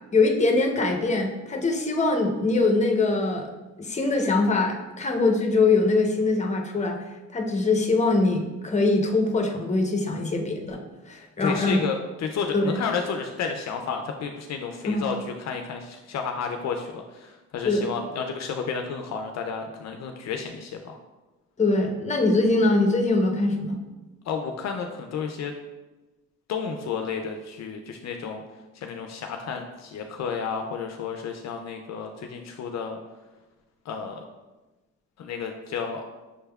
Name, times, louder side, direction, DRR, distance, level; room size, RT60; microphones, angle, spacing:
voice 1, 0.1-3.5 3.8-7.0 7.3-10.8 11.1-11.8 12.5-12.8 14.9-15.1 17.6-17.9 21.6-23.8, left 3 dB, 25° left, 3 dB, 0.7 m, -23 dB
voice 2, 11.4-21.0 24.3-25.5 26.5-28.4 28.7-33.0 33.9-34.2 35.2-36.0, left 6 dB, 60° left, 4 dB, 0.5 m, -31 dB
6.3 x 3.3 x 2.3 m, 1.1 s
cardioid pair, 90°, 30 cm